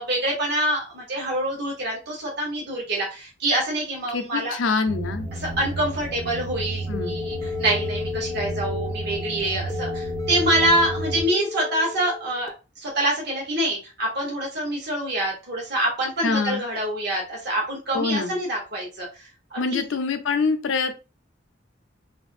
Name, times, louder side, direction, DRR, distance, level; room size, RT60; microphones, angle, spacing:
voice 1, 0.0-4.5 5.6-12.5 12.8-19.1 19.5-19.8, right 1 dB, 60° right, -3 dB, 0.9 m, -26 dB
voice 2, 4.1-5.3 6.9-7.2 16.2-16.6 17.9-18.4 19.6-20.9, left 4 dB, 85° left, 8 dB, 0.5 m, -25 dB
sound 1, 4.9-11.2, right 2 dB, 35° right, 0.6 m, -32 dB
sound 2, 6.9-12.5, left 6 dB, 15° left, 0.4 m, -33 dB
2.6 x 2.5 x 2.5 m, 0.30 s
head